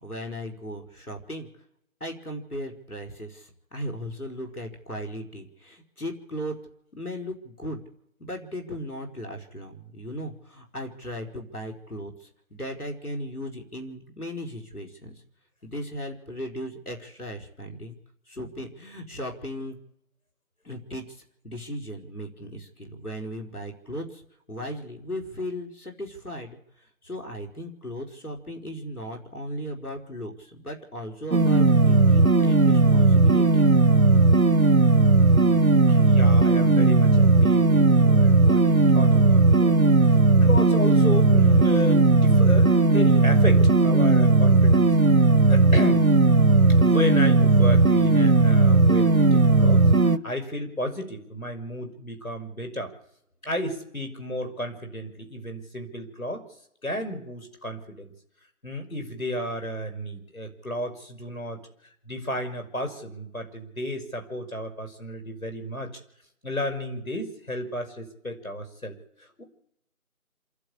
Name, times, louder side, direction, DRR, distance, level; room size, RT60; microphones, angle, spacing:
voice 1, 0.0-1.5 2.0-6.6 6.9-7.8 8.2-15.1 15.6-18.0 18.3-19.8 20.6-24.2 24.5-26.6 27.0-33.7, equal, 90° left, 3 dB, 4.9 m, -37 dB
sound 1, 31.3-50.2, right 3 dB, 75° right, 1.2 m, -17 dB
voice 2, 35.2-45.0 45.5-46.0 46.8-52.9 53.4-56.4 56.8-58.1 58.6-61.6 62.1-66.0 66.4-69.4, left 1 dB, 70° left, 5 dB, 5.8 m, -33 dB
27.5 x 12.0 x 8.5 m, 0.78 s
figure-of-eight pair, 175°, 43 cm